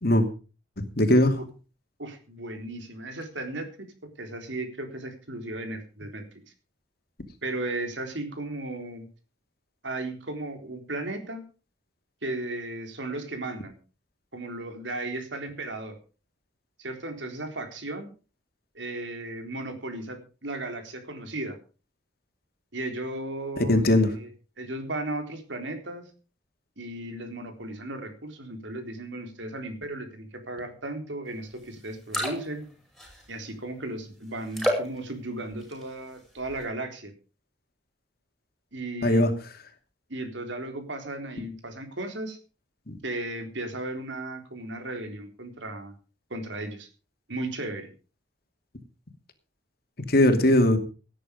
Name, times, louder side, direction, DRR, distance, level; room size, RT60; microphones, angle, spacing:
voice 1, 0.8-1.4 23.7-24.1 39.0-39.3 42.9-43.0 50.1-50.8, left 1 dB, 55° left, 6 dB, 2.7 m, -20 dB
voice 2, 2.0-3.9 4.2-6.4 7.4-9.0 9.8-11.4 12.2-13.8 14.3-16.0 16.8-18.1 18.7-21.6 22.7-24.3 24.6-26.1 26.8-32.6 33.3-37.1 38.7-39.2 40.1-42.4 43.0-45.9 46.3-46.9 47.3-47.9, right 2 dB, 75° right, 6 dB, 3.8 m, -35 dB
sound 1, 31.5-31.6 31.9-32.6 33.0-33.5 34.5-35.0 35.5-36.0 36.4-36.6, equal, ahead, 5.8 m, -29 dB
18.0 x 10.0 x 5.3 m, 0.36 s
head